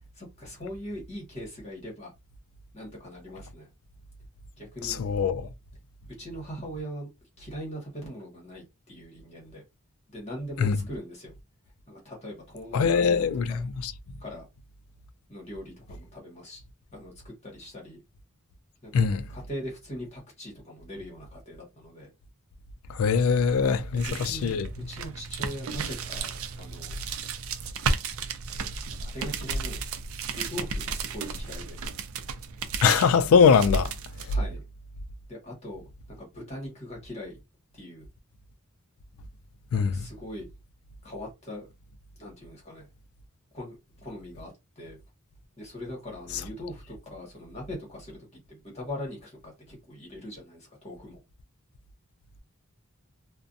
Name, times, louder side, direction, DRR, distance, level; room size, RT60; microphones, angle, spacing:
voice 1, 0.1-2.1 2.7-3.7 4.6-5.0 6.2-7.1 7.4-9.6 10.1-11.3 11.9-13.6 14.2-14.5 15.3-16.6 16.9-18.0 18.8-19.0 19.3-22.1 23.9-24.5 24.9-26.9 29.0-29.9 30.3-31.8 34.3-34.6 35.3-37.4 37.7-38.1 39.7-40.5 41.0-41.7 42.2-42.9 43.5-45.0 45.6-51.2, equal, 30° left, 1.1 m, -41 dB
voice 2, 4.8-5.5 10.6-10.8 12.7-13.9 18.9-19.2 22.9-24.7 32.8-33.9 39.7-40.0, left 6 dB, 70° left, 0.3 m, -22 dB
sound 1, 23.5-34.3, right 5 dB, 70° right, 0.4 m, -34 dB
2.4 x 2.1 x 2.5 m
head